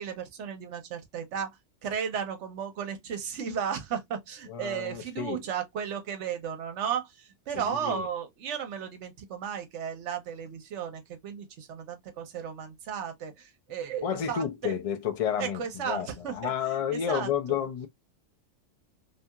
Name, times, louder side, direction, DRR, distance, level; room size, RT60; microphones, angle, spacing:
voice 1, 0.0-1.5 1.8-14.8 15.4-16.5 16.9-17.6, right 7 dB, 70° right, 1.0 m, -34 dB
voice 2, 4.5-5.4 7.5-8.1 14.0-17.9, left 8 dB, 60° left, 0.3 m, -31 dB
2.8 x 2.7 x 2.3 m
omnidirectional pair, 1.3 m